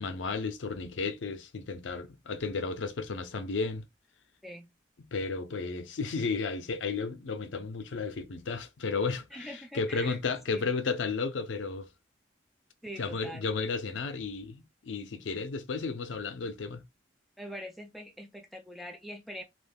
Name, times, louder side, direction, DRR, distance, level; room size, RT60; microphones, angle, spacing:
voice 1, 0.0-3.8 5.1-11.9 13.0-16.8, left 4 dB, 80° left, 0.5 m, -33 dB
voice 2, 9.3-10.2 10.5-10.7 12.8-13.5 17.4-19.4, equal, ahead, 0.4 m, -43 dB
2.4 x 2.2 x 3.4 m
head